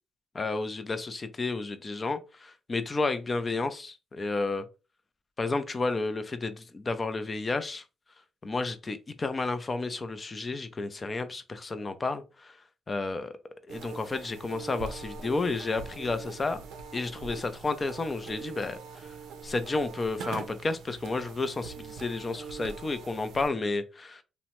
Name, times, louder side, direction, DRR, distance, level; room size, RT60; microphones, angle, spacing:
voice 1, 0.3-4.6 5.4-7.8 8.4-12.6 12.9-13.3 13.7-16.6 16.9-19.1 19.4-24.2, left 3 dB, 30° left, 0.4 m, -31 dB
sound 1, 13.7-23.5, right 6 dB, 80° right, 0.5 m, -43 dB
2.8 x 2.1 x 2.9 m
cardioid pair, 90°, 0 cm